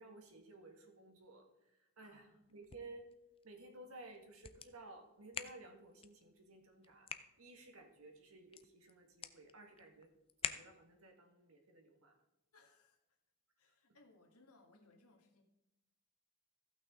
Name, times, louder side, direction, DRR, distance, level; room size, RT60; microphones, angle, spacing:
voice 1, 0.0-3.1 3.4-7.1 7.4-10.1 10.4-12.2, right 2 dB, 70° right, 4 dB, 1.6 m, -56 dB
voice 2, 2.0-2.4 12.5-13.2 13.6-15.4, left 2 dB, 85° left, 3 dB, 1.7 m, -67 dB
sound 1, 2.4-11.1, left 7 dB, 25° left, 0.4 m, -50 dB
15.0 x 5.9 x 3.7 m, 0.93 s
head